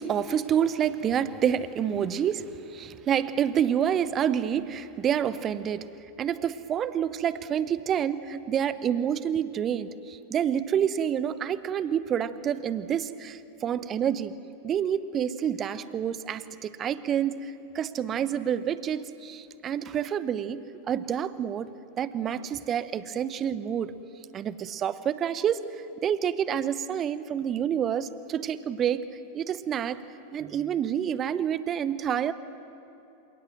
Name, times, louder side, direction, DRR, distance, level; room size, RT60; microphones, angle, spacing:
voice 1, 0.0-5.9 6.2-14.3 14.6-23.9 24.3-25.6 26.0-29.1 29.3-30.0 30.3-32.3, right 9 dB, 30° right, 16 dB, 0.8 m, -28 dB
27.0 x 18.0 x 7.7 m, 2.8 s
figure-of-eight pair, 90°, 0 cm